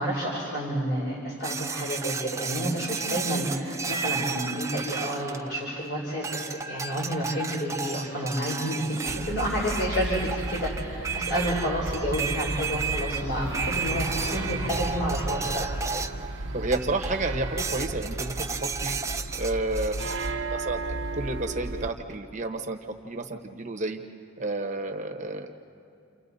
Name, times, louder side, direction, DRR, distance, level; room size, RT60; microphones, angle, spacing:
voice 1, 0.0-15.8, equal, 50° left, -4 dB, 3.7 m, -30 dB
sound 1, 1.4-5.8 6.2-16.3 16.7-17.2 17.6-20.3, right 5 dB, 15° right, 0.4 m, -33 dB
sound 2, 9.1-21.9, right 2 dB, 60° right, 0.8 m, -33 dB
voice 2, 16.5-19.0 19.3-20.0 20.5-22.8 23.0-24.0 24.4-25.5, right 2 dB, 35° right, 4 dB, 1.1 m, -31 dB
29.0 x 29.0 x 4.1 m, 2.6 s
head